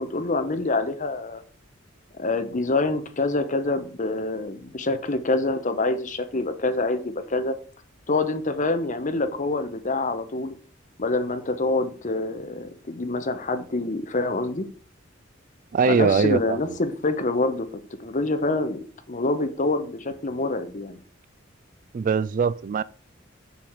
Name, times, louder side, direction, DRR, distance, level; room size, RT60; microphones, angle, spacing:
voice 1, 0.0-1.4 2.2-7.6 8.1-10.5 11.0-14.7 15.8-17.7 18.0-21.0, left 2 dB, 40° left, 0.9 m, -26 dB
voice 2, 15.7-16.8 21.9-22.8, right 5 dB, 45° right, 0.3 m, -22 dB
6.9 x 4.9 x 6.1 m
head